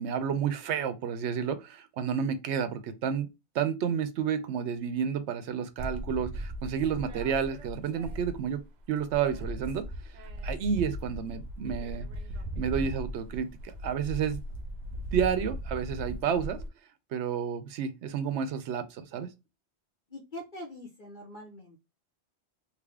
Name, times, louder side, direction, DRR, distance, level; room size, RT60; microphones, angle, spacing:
voice 1, 0.0-3.3 3.5-8.6 8.9-9.8 10.4-12.1 12.6-14.4 15.1-16.6 17.1-19.3, right 7 dB, 80° right, 0.9 m, -30 dB
sound 1, 5.8-8.6 8.9-16.7, equal, 60° right, 0.5 m, -38 dB
voice 2, 20.1-21.8, left 1 dB, 50° left, 1.0 m, -43 dB
3.4 x 2.1 x 3.4 m
omnidirectional pair, 1.2 m